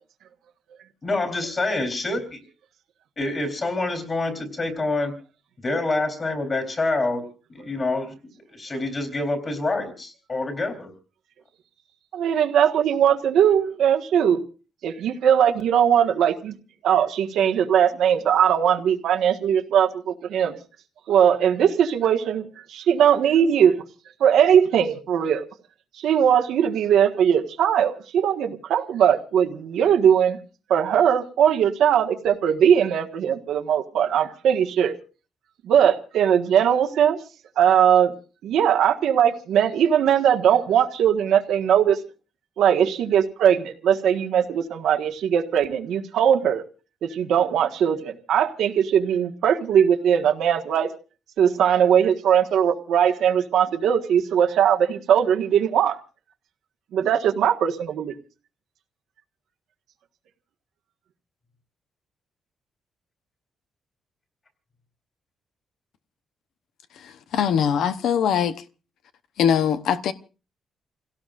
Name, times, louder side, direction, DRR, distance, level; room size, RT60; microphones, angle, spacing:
voice 1, 1.0-2.4 3.2-5.1 5.6-7.2 7.5-8.1 8.5-10.9, left 2 dB, 30° left, 3.9 m, -26 dB
voice 2, 12.1-14.4 14.8-16.5 16.8-20.6 21.1-23.8 24.2-25.4 26.0-30.4 30.7-35.0 35.6-37.2 37.6-38.1 38.4-42.0 42.6-46.6 47.0-50.9 51.4-56.0 56.9-58.1, right 9 dB, 90° right, 1.5 m, -20 dB
voice 3, 67.0-68.6 69.4-70.1, left 8 dB, 85° left, 0.9 m, -22 dB
29.0 x 17.0 x 2.6 m
cardioid pair, 135°, 0 cm